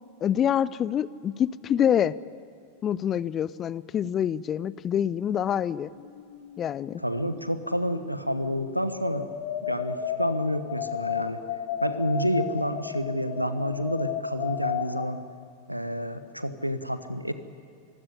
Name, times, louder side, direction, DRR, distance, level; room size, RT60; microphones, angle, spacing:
voice 1, 0.2-2.2 2.8-5.9 6.6-7.0, left 9 dB, 25° left, 20 dB, 0.5 m, -26 dB
sound 1, 6.0-6.9 7.2-15.1, left 9 dB, 45° left, 1.7 m, -34 dB
voice 2, 7.0-9.3 9.7-11.4 11.8-15.2 15.7-17.3, equal, 90° right, 12 dB, 1.2 m, -29 dB
25.0 x 16.0 x 10.0 m, 2.5 s
figure-of-eight pair, 90°, 0 cm